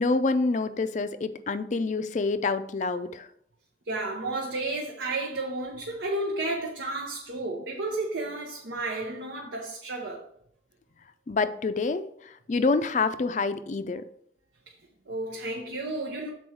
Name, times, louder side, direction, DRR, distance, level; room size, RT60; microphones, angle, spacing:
voice 1, 0.0-3.3 11.3-12.0 12.5-14.0, left 3 dB, 40° left, 0.4 m, -27 dB
voice 2, 3.9-10.3 15.1-16.3, right 2 dB, 85° right, 0.9 m, -32 dB
7.0 x 4.5 x 4.6 m
head